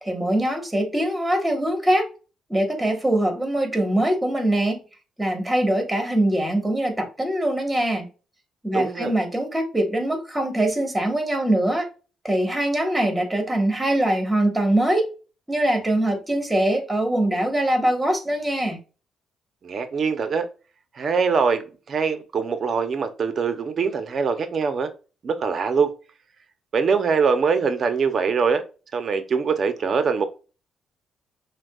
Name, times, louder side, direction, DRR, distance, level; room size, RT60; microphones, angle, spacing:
voice 1, 0.0-2.1 2.5-4.8 5.2-8.1 8.6-11.9 12.2-15.1 15.5-18.8, right 1 dB, 10° right, 1.4 m, -22 dB
voice 2, 8.7-9.1 19.6-20.5 20.9-24.9 25.2-25.9 26.7-28.6 28.9-30.3, right 5 dB, 50° right, 0.7 m, -23 dB
6.1 x 2.3 x 2.3 m
cardioid pair, 90°, 0 cm